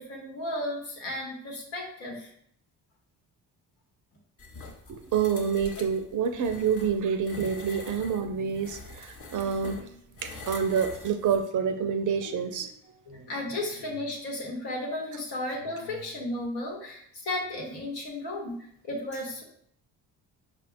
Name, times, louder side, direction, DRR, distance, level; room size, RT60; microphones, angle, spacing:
voice 1, 0.0-2.3 13.1-19.4, left 1 dB, 75° left, -1 dB, 1.0 m, -34 dB
sound 1, 4.4-11.4, left 3 dB, 30° left, 0.8 m, -45 dB
voice 2, 4.9-9.8 10.2-12.7, right 7 dB, 45° right, 8 dB, 0.5 m, -28 dB
5.1 x 2.2 x 2.5 m, 0.67 s
hypercardioid pair, 45°, 45 cm